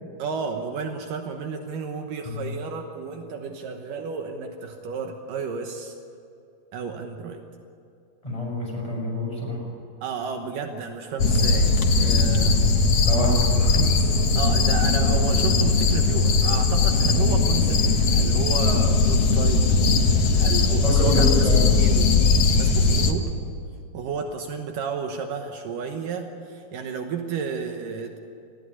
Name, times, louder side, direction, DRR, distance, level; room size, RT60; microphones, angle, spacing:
voice 1, 0.2-6.0 6.7-7.4 10.0-11.7 12.0-12.8 14.4-19.7 20.4-21.4 21.8-22.2 22.6-23.3 23.9-28.2, right 6 dB, 75° right, 4 dB, 2.7 m, -32 dB
voice 2, 8.2-9.6 13.0-14.1 20.8-21.7, equal, 10° left, -3 dB, 6.8 m, -27 dB
sound 1, 11.2-23.1, left 3 dB, 55° left, 2.1 m, -19 dB
20.0 x 15.5 x 9.7 m, 2.6 s
omnidirectional pair, 4.0 m